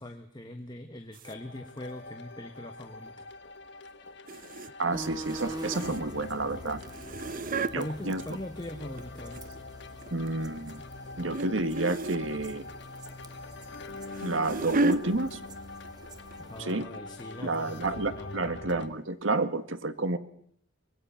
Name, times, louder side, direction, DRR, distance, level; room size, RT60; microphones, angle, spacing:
voice 1, 0.0-3.3 7.7-9.4 16.5-18.7, left 1 dB, 25° left, 5 dB, 1.4 m, -41 dB
sound 1, 1.1-1.3 4.3-4.7 5.0-6.2 6.8-7.7 8.8-9.6 10.0-10.3 11.3-11.5 11.7-12.3 13.7-15.0 15.8-16.1 16.3-16.4 16.9-17.0, right 2 dB, 45° right, 0.8 m, -32 dB
sound 2, 1.2-18.9, left 3 dB, 60° left, 1.4 m, -44 dB
voice 2, 4.8-6.8 7.7-8.2 10.1-10.8 11.2-12.6 14.2-15.4 16.6-16.9 17.4-20.2, right 2 dB, 85° right, 10 dB, 1.6 m, -30 dB
sound 3, 4.9-16.6, right 1 dB, 20° right, 1.3 m, -46 dB
25.0 x 20.5 x 5.8 m, 0.66 s
head